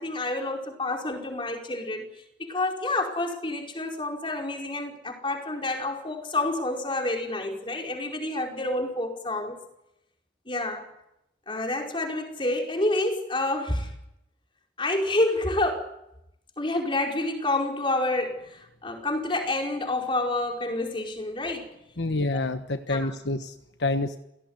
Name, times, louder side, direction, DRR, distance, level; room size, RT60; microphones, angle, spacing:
voice 1, 0.0-2.1 2.4-9.6 10.5-10.9 11.5-13.9 14.8-15.9 16.6-21.7 22.9-23.1, left 2 dB, 30° left, 2 dB, 4.8 m, -28 dB
voice 2, 22.0-24.2, left 2 dB, 70° left, 8 dB, 1.3 m, -28 dB
29.0 x 17.5 x 9.7 m, 0.86 s
head